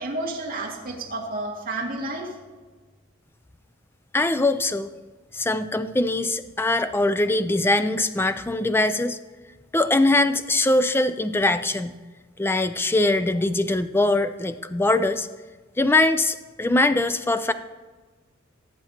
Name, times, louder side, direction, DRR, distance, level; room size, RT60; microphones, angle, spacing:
voice 1, 0.0-2.3, right 2 dB, 40° right, -3 dB, 2.1 m, -31 dB
voice 2, 4.1-4.9 5.3-9.2 9.7-11.9 12.4-15.3 15.8-17.5, left 2 dB, 10° left, 11 dB, 0.4 m, -22 dB
17.5 x 7.7 x 2.9 m, 1.3 s
head